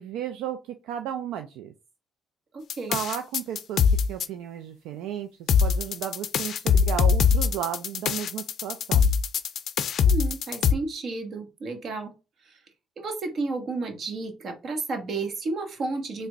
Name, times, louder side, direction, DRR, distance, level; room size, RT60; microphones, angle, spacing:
voice 1, 0.0-1.7 2.9-3.8 4.1-9.1, right 10 dB, 80° right, 7 dB, 0.4 m, -34 dB
voice 2, 2.5-3.0 10.0-12.1 13.0-16.3, right 3 dB, 55° right, 5 dB, 1.1 m, -32 dB
sound 1, 2.7-4.3 5.5-10.7, left 6 dB, 60° left, 0.4 m, -22 dB
3.3 x 2.1 x 3.8 m, 0.28 s
supercardioid pair, 65°, 0 cm